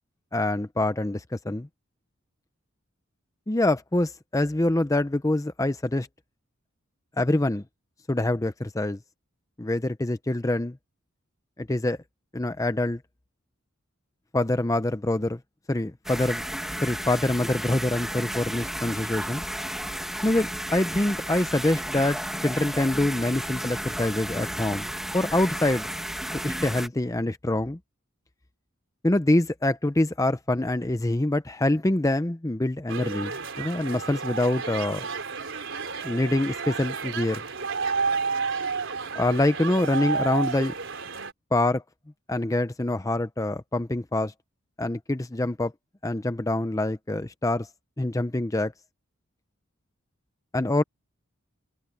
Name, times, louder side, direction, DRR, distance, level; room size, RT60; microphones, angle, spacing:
voice 1, 0.3-1.7 3.5-6.1 7.2-7.6 8.1-9.0 9.6-10.8 11.6-12.0 12.3-13.0 14.3-15.4 15.7-16.4 16.8-19.4 20.2-24.9 25.1-25.9 26.4-27.8 29.0-35.1 36.0-37.4 39.1-40.7 41.5-41.8 42.3-44.3 44.8-45.7 46.0-47.7 48.0-48.7 50.5-50.8, left 1 dB, 15° left, 0.6 m, -25 dB
sound 1, 16.0-26.9, equal, ahead, 1.6 m, -33 dB
sound 2, 32.9-41.3, right 5 dB, 65° right, 4.3 m, -31 dB
head